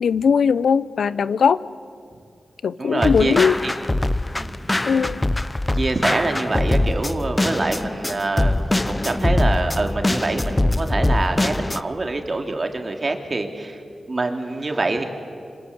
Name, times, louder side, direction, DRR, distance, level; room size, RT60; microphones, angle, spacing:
voice 1, 0.0-1.6 2.6-3.6 4.8-5.2, left 6 dB, 90° left, 17 dB, 0.6 m, -19 dB
voice 2, 2.8-3.4 3.6-3.7 4.4-4.6 5.7-13.8 14.1-15.0, right 2 dB, 35° right, 4 dB, 2.9 m, -25 dB
sound 1, 3.0-11.8, left 1 dB, 15° left, 0.7 m, -22 dB
27.0 x 25.5 x 8.1 m, 2.2 s
wide cardioid pair, 95°, 0 cm